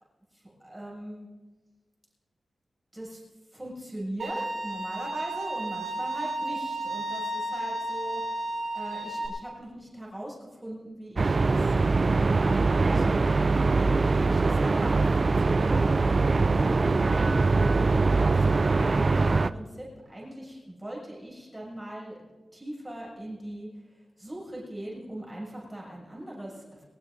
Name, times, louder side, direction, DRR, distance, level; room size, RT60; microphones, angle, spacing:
voice 1, 0.3-1.3 2.9-3.2 3.5-8.2 8.7-11.7 12.3-15.9 16.6-17.5 17.9-26.8, right 1 dB, 10° right, -4 dB, 6.6 m, -40 dB
Bowed string instrument, 4.2-9.3, right 1 dB, 70° right, 3.9 m, -33 dB
sound 1, 11.2-19.5, right 3 dB, 40° right, 0.4 m, -23 dB
22.5 x 20.0 x 2.7 m, 1.3 s
wide cardioid pair, 125°, 0 cm